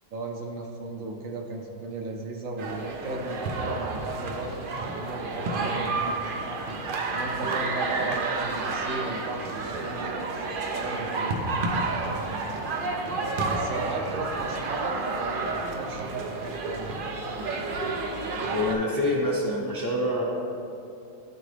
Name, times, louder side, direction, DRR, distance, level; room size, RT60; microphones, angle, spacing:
voice 1, 0.1-6.2 7.1-10.2 10.7-11.5 13.5-17.0, right 2 dB, 65° right, 1 dB, 1.0 m, -35 dB
sound 1, 2.6-18.7, right 3 dB, 90° right, 0.4 m, -30 dB
voice 2, 18.5-20.2, left 1 dB, 25° left, -4 dB, 0.5 m, -26 dB
11.5 x 3.8 x 3.2 m, 2.7 s
omnidirectional pair, 1.6 m